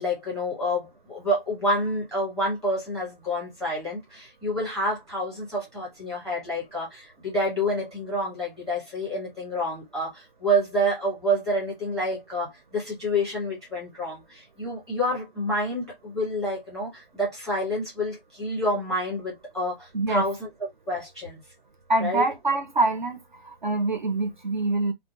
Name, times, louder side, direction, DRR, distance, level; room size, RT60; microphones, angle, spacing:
voice 1, 0.0-20.5 20.9-21.4 22.0-22.2, equal, 5° right, 0.6 m, -28 dB
voice 2, 21.9-23.2 23.4-24.9, right 2 dB, 50° right, 0.5 m, -25 dB
2.5 x 2.0 x 2.7 m
hypercardioid pair, 180°, 30 cm